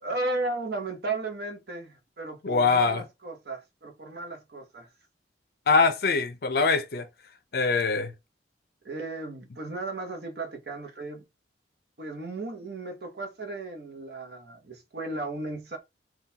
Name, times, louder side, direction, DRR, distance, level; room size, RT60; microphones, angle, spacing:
voice 1, 0.0-4.9 8.8-11.2 12.0-15.8, right 2 dB, 60° right, 0.8 m, -35 dB
voice 2, 2.4-3.0 5.7-7.1 7.5-8.1, left 4 dB, 60° left, 0.5 m, -23 dB
3.7 x 2.3 x 2.8 m
head